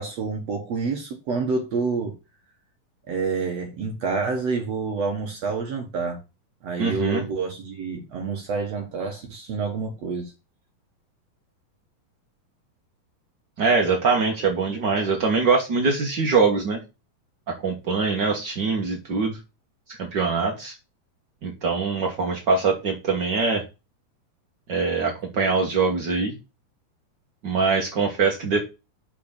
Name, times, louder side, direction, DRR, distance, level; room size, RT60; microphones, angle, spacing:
voice 1, 0.0-2.1 3.1-6.2 6.6-10.3, right 4 dB, 55° right, 2.0 m, -28 dB
voice 2, 6.8-7.2 13.6-16.8 17.5-19.4 20.0-20.7 21.4-23.6 24.7-26.4 27.4-28.7, right 4 dB, 80° right, 0.9 m, -23 dB
6.0 x 5.7 x 6.7 m
omnidirectional pair, 4.3 m